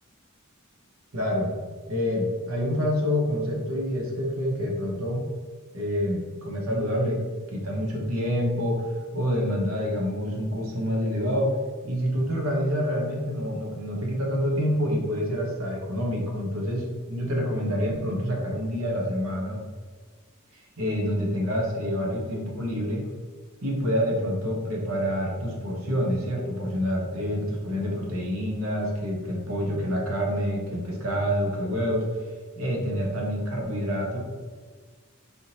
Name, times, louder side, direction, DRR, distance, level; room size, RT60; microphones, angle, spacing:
voice 1, 1.1-1.5 1.9-5.2 5.7-7.2 7.5-8.9 9.1-11.5 11.8-19.6 20.5-23.0 23.6-32.1 32.6-34.2, equal, 75° right, -1 dB, 1.1 m, -27 dB
4.3 x 3.5 x 2.8 m, 1.5 s
head